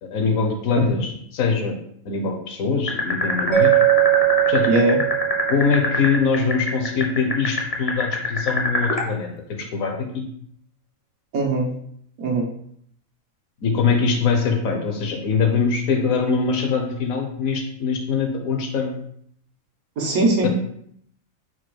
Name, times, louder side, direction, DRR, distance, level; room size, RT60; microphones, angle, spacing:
voice 1, 0.0-1.7 2.0-3.7 4.5-4.7 5.5-10.2 13.6-18.9 20.4-20.5, left 5 dB, 75° left, 3 dB, 1.2 m, -23 dB
sound 1, 2.9-9.1, left 2 dB, 40° left, 0.5 m, -22 dB
Mallet percussion, 3.5-6.5, right 16 dB, 45° right, 0.6 m, -20 dB
voice 2, 4.7-5.0 11.3-11.7 12.2-12.5 20.0-20.5, right 2 dB, 85° right, 0 dB, 1.4 m, -20 dB
4.4 x 2.2 x 4.5 m, 0.67 s
omnidirectional pair, 1.5 m